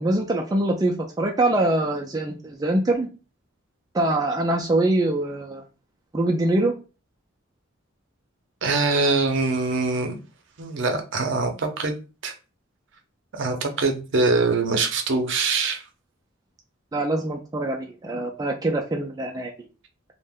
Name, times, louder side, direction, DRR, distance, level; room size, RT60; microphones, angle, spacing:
voice 1, 0.0-3.1 3.9-5.6 6.1-6.7 16.9-19.7, right 2 dB, 20° right, 0.3 m, -24 dB
voice 2, 8.6-10.2 10.6-12.3 13.3-15.8, right 3 dB, 60° right, 0.6 m, -23 dB
2.5 x 2.1 x 3.5 m
head